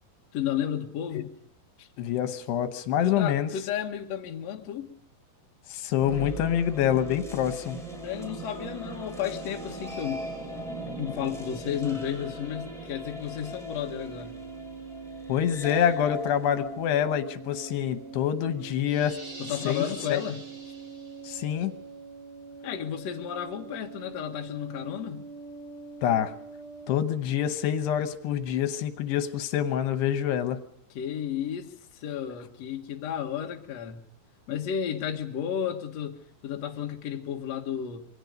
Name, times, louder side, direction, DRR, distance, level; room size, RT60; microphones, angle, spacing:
voice 1, 0.3-1.3 1.8-1.9 3.0-4.9 8.0-10.2 11.0-14.4 19.4-20.4 22.6-25.3 30.9-34.0 34.5-38.1, left 9 dB, 55° left, 2.1 m, -32 dB
voice 2, 2.0-3.5 5.7-7.8 15.3-19.2 19.7-20.2 21.2-21.7 26.0-26.3 26.9-30.6, left 10 dB, 80° left, 3.1 m, -26 dB
sound 1, 5.9-18.1, right 1 dB, ahead, 6.0 m, -39 dB
sound 2, 13.8-27.0, right 5 dB, 60° right, 1.4 m, -44 dB
sound 3, 18.8-21.4, right 1 dB, 20° right, 3.1 m, -44 dB
27.5 x 23.0 x 5.2 m
omnidirectional pair, 4.7 m